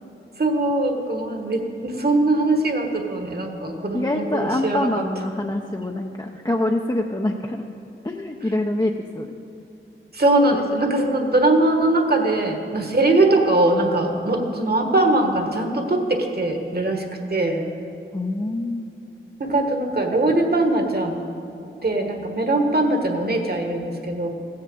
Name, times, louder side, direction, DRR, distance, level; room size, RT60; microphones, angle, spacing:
voice 1, 0.4-4.9 10.1-17.0 17.3-17.7 19.4-21.2 21.8-24.3, right 2 dB, 50° right, 3 dB, 1.5 m, -21 dB
voice 2, 3.7-7.6 8.0-9.3 18.1-18.9, left 1 dB, 20° left, 1 dB, 0.6 m, -25 dB
15.0 x 6.7 x 7.8 m, 2.7 s
wide cardioid pair, 75°, 21 cm